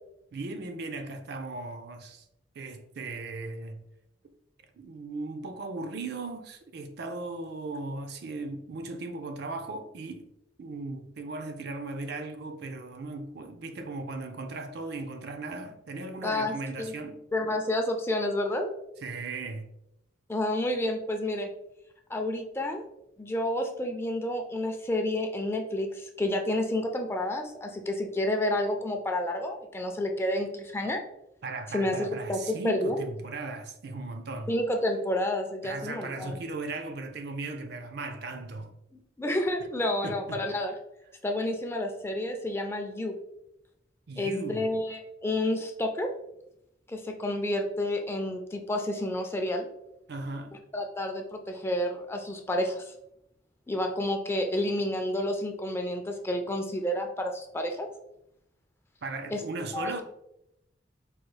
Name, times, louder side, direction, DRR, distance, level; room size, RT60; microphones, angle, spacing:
voice 1, 0.3-2.3 2.5-3.8 4.8-10.3 10.6-17.2 19.0-19.7 31.4-34.5 35.6-38.8 40.0-40.5 44.1-44.7 50.1-50.6 59.0-60.0, right 3 dB, 60° right, 0.4 m, -37 dB
voice 2, 16.2-16.9 17.3-18.7 20.3-21.5 22.1-22.8 23.2-31.0 31.7-33.0 34.5-36.4 39.2-40.7 41.2-43.1 44.2-46.1 46.9-49.7 50.7-52.9 53.7-57.9 59.3-59.4 59.7-59.9, left 1 dB, 15° left, 0.3 m, -30 dB
4.6 x 2.3 x 3.2 m
head